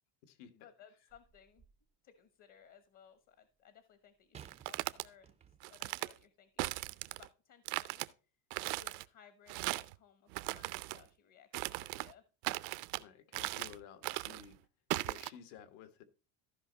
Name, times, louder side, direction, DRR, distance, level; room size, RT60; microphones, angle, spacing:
voice 1, 0.5-1.6 2.0-6.8 7.1-8.0 8.7-12.2, left 8 dB, 45° left, 11 dB, 1.1 m, -62 dB
sound 1, 1.1-1.9 4.3-5.9 6.7-6.8, right 8 dB, 15° right, 0.4 m, -58 dB
sound 2, 4.4-5.1 5.6-6.1 6.6-7.3 7.7-8.1 8.5-9.0 9.5-9.9 10.3-11.0 11.5-12.1 12.4-13.0 13.3-13.8 14.0-14.4 14.9-15.3, right 21 dB, 75° right, 0.7 m, -38 dB
voice 2, 13.0-14.6 15.0-16.0, left 9 dB, 70° left, 11 dB, 1.6 m, -54 dB
14.0 x 5.3 x 3.9 m, 0.35 s
cardioid pair, 155°, 43 cm